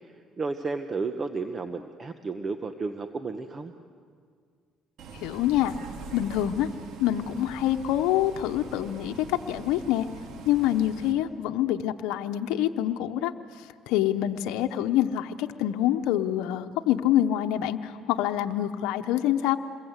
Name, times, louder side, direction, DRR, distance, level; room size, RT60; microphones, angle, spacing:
voice 1, 0.4-3.7, right 4 dB, 35° right, 7 dB, 1.2 m, -32 dB
Bus, 5.0-11.1, right 4 dB, 70° right, 2.7 m, -43 dB
voice 2, 5.1-5.8 6.1-6.7 7.0-10.1 10.4-13.3 13.6-19.6, left 12 dB, 85° left, 5 dB, 0.9 m, -26 dB
27.5 x 22.5 x 8.2 m, 2.1 s
supercardioid pair, 85°, 0 cm